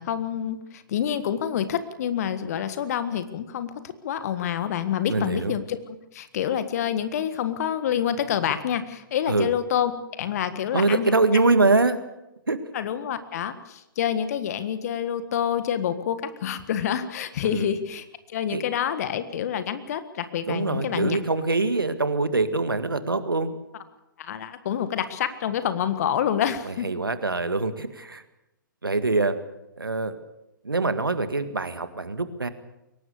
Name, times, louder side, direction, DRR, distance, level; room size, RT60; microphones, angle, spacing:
voice 1, 0.0-9.9 10.2-11.1 12.7-21.2 24.2-26.9, left 9 dB, 45° left, 12 dB, 1.6 m, -27 dB
voice 2, 5.1-5.6 9.3-9.5 10.7-12.0 12.5-12.6 17.4-17.7 18.5-18.6 20.5-23.5 26.7-28.2 28.8-29.4 29.8-30.2 30.6-32.5, right 3 dB, 80° right, 11 dB, 1.9 m, -24 dB
22.5 x 18.5 x 6.8 m, 0.90 s
figure-of-eight pair, 120°, 11 cm